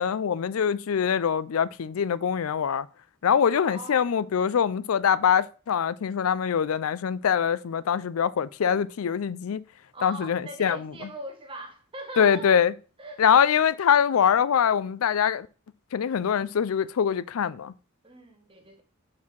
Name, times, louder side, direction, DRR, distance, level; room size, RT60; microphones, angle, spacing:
voice 1, 0.0-2.9 3.2-9.6 10.0-10.9 12.2-12.7 13.2-15.5 15.9-17.7, left 7 dB, 80° left, 0.4 m, -23 dB
voice 2, 3.5-4.2 9.9-12.6 13.0-13.4 18.0-18.8, right 2 dB, 25° right, 1.6 m, -41 dB
6.0 x 4.6 x 5.9 m
head